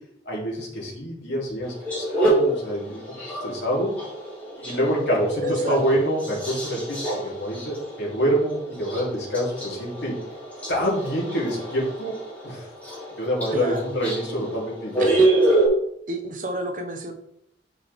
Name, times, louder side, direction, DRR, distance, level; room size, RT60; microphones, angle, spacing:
voice 1, 0.2-3.0 3.3-3.9 4.6-10.1 10.7-12.1 12.4-12.7 13.2-15.1, equal, 80° left, -4 dB, 3.0 m, -26 dB
sound 1, 1.6-15.7, right 2 dB, 10° left, 3.0 m, -27 dB
voice 2, 5.4-5.8 13.5-13.9 15.0-15.6 16.1-17.1, right 1 dB, 45° right, 4 dB, 1.1 m, -31 dB
8.6 x 5.4 x 3.5 m, 0.74 s
head